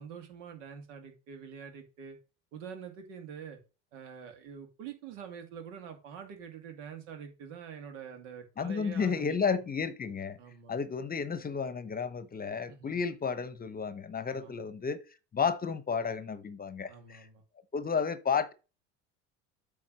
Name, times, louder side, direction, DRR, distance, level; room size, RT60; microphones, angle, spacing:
voice 1, 0.0-2.2 2.5-3.6 3.9-9.6 10.4-10.8 12.7-13.0 14.3-14.6 16.9-17.4, right 7 dB, 80° right, 2.4 m, -46 dB
voice 2, 8.6-10.4 10.7-15.0 15.3-17.3 17.7-18.5, left 6 dB, 25° left, 0.9 m, -32 dB
8.5 x 3.7 x 6.2 m
hypercardioid pair, 85°, 36 cm